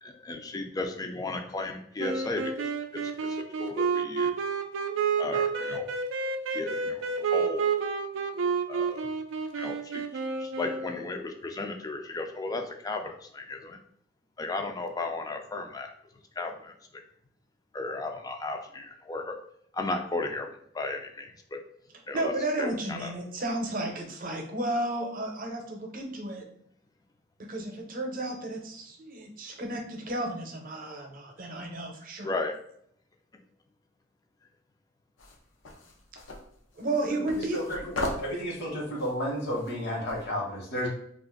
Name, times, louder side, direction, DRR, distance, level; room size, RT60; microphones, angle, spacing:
voice 1, 0.0-4.3 5.2-5.9 6.5-7.7 8.7-9.1 9.6-10.0 10.4-13.8 14.4-15.9 16.4-16.7 17.7-19.4 19.7-21.6 22.1-22.3 22.6-23.1 32.2-32.5, left 2 dB, 20° left, 4 dB, 0.4 m, -35 dB
sound 1, 2.0-11.2, right 5 dB, 75° right, 0.4 m, -30 dB
voice 2, 22.1-26.4 27.5-32.3 36.8-37.8, right 1 dB, 45° right, 2 dB, 0.7 m, -33 dB
sound 2, 35.2-40.3, left 2 dB, 80° left, 0.6 m, -39 dB
voice 3, 38.0-40.9, equal, 60° left, -3 dB, 1.1 m, -32 dB
2.5 x 2.4 x 3.7 m, 0.69 s
head